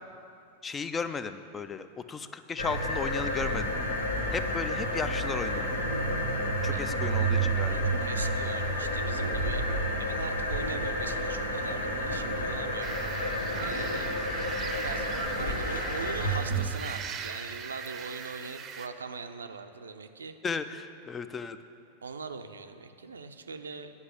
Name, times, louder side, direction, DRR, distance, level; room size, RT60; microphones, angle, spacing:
voice 1, 0.6-3.7 4.3-5.7 6.6-7.9 20.4-21.6, left 5 dB, 20° left, 11 dB, 0.4 m, -35 dB
sound 1, 2.6-16.6, right 1 dB, 80° left, 1.1 m, -30 dB
voice 2, 7.7-9.7 10.0-13.0 13.6-14.2 14.7-15.1 15.4-20.3 22.0-23.9, right 4 dB, 70° right, 8 dB, 0.5 m, -41 dB
sound 2, 12.8-18.9, right 7 dB, 30° right, 0.6 m, -40 dB
9.6 x 5.4 x 8.1 m, 2.5 s
figure-of-eight pair, 90°, 0 cm